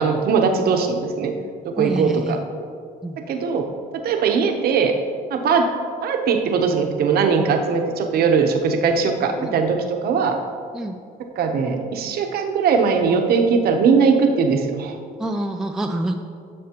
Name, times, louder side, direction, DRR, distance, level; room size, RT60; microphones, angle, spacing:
voice 1, 0.0-1.3 1.6-2.4 3.2-3.7 4.0-4.9 5.3-5.7 6.0-10.4 11.4-14.9, right 5 dB, 65° right, 4 dB, 0.9 m, -20 dB
voice 2, 1.8-2.4 3.0-3.2 9.4-9.6 10.7-10.9 15.2-16.2, right 1 dB, 5° right, 4 dB, 0.3 m, -27 dB
11.0 x 6.3 x 3.0 m, 2.2 s
cardioid pair, 110°, 17 cm